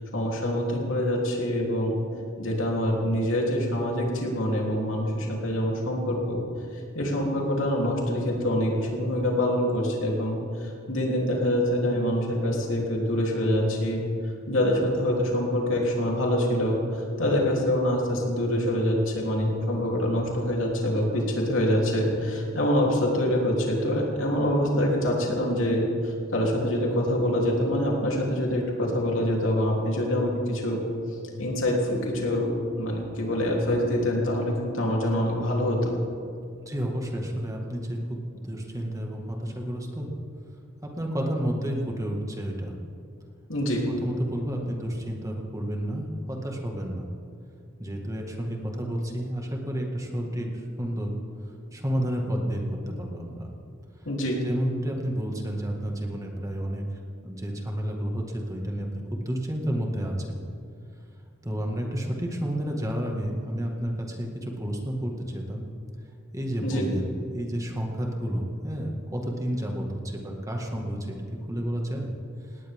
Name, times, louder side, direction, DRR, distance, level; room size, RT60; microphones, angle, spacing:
voice 1, 0.0-2.0 2.4-6.4 6.9-14.0 14.5-30.8 31.4-32.5 32.7-36.0 43.5-43.9 54.0-54.4 66.6-66.9, left 1 dB, 80° left, -2 dB, 3.4 m, -25 dB
voice 2, 36.7-40.1 40.8-42.8 44.0-47.1 47.8-51.1 51.7-53.5 54.4-56.8 57.2-60.4 61.4-65.1 65.5-65.7 66.3-71.2 71.5-72.1, equal, 15° right, 0 dB, 1.9 m, -31 dB
19.0 x 18.0 x 3.7 m, 2.4 s
head